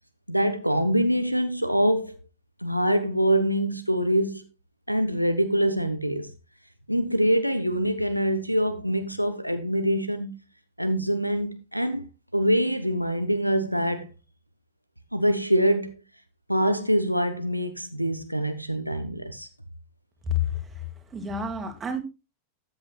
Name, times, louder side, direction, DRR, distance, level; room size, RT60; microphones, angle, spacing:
voice 1, 0.3-2.2 2.6-4.4 4.9-6.3 6.9-10.3 10.8-12.1 12.3-14.1 15.1-15.9 16.5-19.5, equal, 90° right, 0.9 m, -24 dB
voice 2, 20.2-22.0, left 5 dB, 20° right, 2.4 m, -30 dB
13.0 x 8.9 x 2.4 m
figure-of-eight pair, 90°, 0 cm